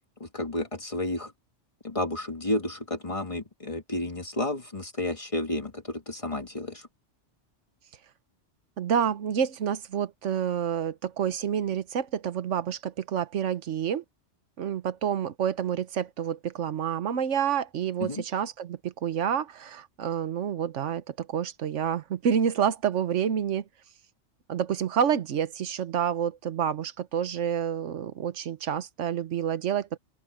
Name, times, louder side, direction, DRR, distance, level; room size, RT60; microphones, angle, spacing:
voice 1, 0.2-1.3 1.8-6.9 18.0-18.2, left 1 dB, 30° left, 1.7 m, -31 dB
voice 2, 8.8-14.0 14.6-23.6 24.5-30.0, right 8 dB, 90° right, 1.2 m, -28 dB
open air
omnidirectional pair, 1.2 m